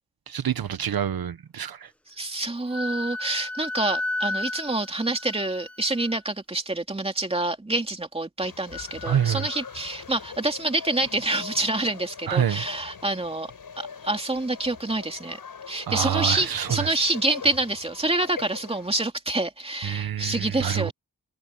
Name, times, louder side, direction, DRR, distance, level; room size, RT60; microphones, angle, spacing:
voice 1, 0.3-1.9 9.0-9.5 12.3-12.6 15.9-17.0 19.8-20.9, right 9 dB, 80° right, 1.0 m, -27 dB
voice 2, 2.2-13.5 13.8-15.4 15.7-20.9, right 2 dB, 15° right, 2.8 m, -27 dB
Wind instrument woodwind instrument, 2.7-6.2, left 2 dB, 5° left, 1.3 m, -32 dB
sound 1, 8.4-19.1, left 6 dB, 70° left, 7.1 m, -42 dB
wide cardioid pair, 160°, 36 cm